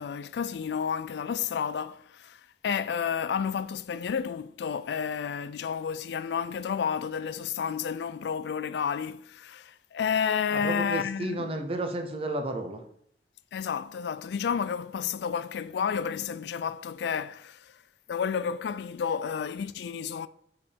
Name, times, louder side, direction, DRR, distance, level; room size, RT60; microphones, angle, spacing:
voice 1, 0.0-11.5 13.5-17.7 18.1-20.3, left 7 dB, 75° left, 0.3 m, -31 dB
voice 2, 10.5-12.8, right 2 dB, 35° right, 0.8 m, -32 dB
5.3 x 4.7 x 5.1 m
head